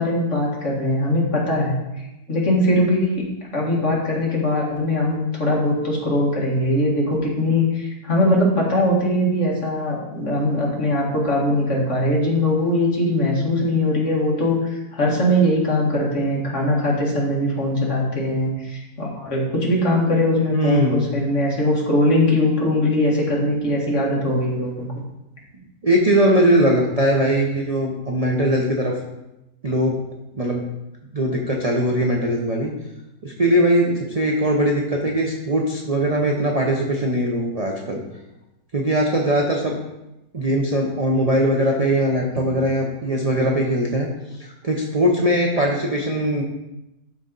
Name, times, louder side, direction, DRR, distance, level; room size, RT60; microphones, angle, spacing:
voice 1, 0.0-3.2 3.5-24.9, left 1 dB, 50° left, -3 dB, 2.2 m, -21 dB
voice 2, 20.5-21.0 25.8-29.0 29.6-30.0 30.3-30.7 31.1-32.7 33.2-38.0 38.7-39.8 40.3-44.1 44.4-46.4, right 1 dB, 35° right, 0 dB, 0.6 m, -20 dB
12.5 x 4.2 x 3.9 m, 0.93 s
omnidirectional pair, 1.7 m